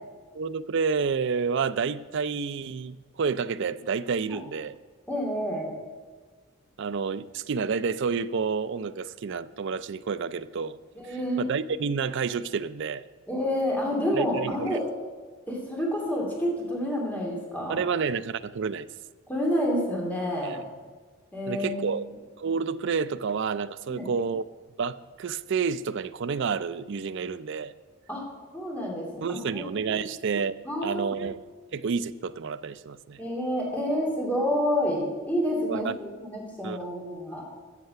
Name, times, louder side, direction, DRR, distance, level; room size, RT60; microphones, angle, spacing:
voice 1, 0.3-4.8 6.8-10.8 11.4-13.0 14.1-14.8 17.7-18.9 20.4-20.6 21.5-22.1 22.4-24.4 24.8-27.7 29.2-30.5 30.8-31.4 31.7-33.2 35.7-35.9 36.6-36.9, right 5 dB, 60° right, 0.4 m, -29 dB
voice 2, 5.1-5.7 10.9-11.5 13.3-14.8 15.5-17.8 19.3-20.6 21.3-22.1 23.9-24.1 28.1-28.2 28.5-30.0 30.6-31.1 33.2-37.4, equal, 10° left, 2.7 m, -29 dB
14.5 x 6.6 x 5.8 m
head